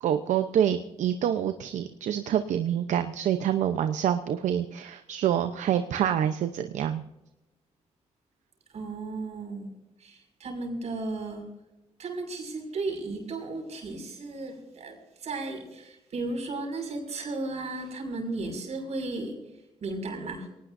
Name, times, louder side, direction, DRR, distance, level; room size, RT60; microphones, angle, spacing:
voice 1, 0.0-7.0, right 9 dB, 85° right, 8 dB, 0.8 m, -27 dB
voice 2, 8.7-9.7 10.0-11.4 12.0-19.4 19.8-20.5, right 2 dB, 65° right, 3 dB, 6.2 m, -35 dB
23.0 x 19.0 x 2.7 m, 0.96 s
cardioid pair, 80°, 12 cm